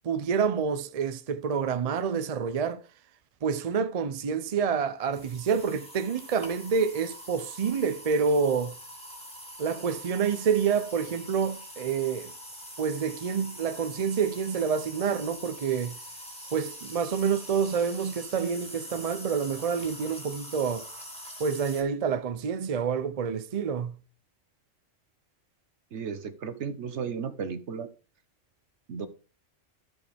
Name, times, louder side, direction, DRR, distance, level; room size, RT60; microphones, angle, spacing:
voice 1, 0.0-2.8 3.4-8.7 9.6-12.3 12.8-16.0 16.5-20.9 21.4-24.0, right 6 dB, 45° right, 0.5 m, -28 dB
sound 1, 5.1-21.8, equal, 5° left, 2.1 m, -44 dB
voice 2, 25.9-27.9 28.9-29.1, right 6 dB, 65° right, 1.2 m, -34 dB
13.5 x 4.7 x 3.4 m
omnidirectional pair, 1.3 m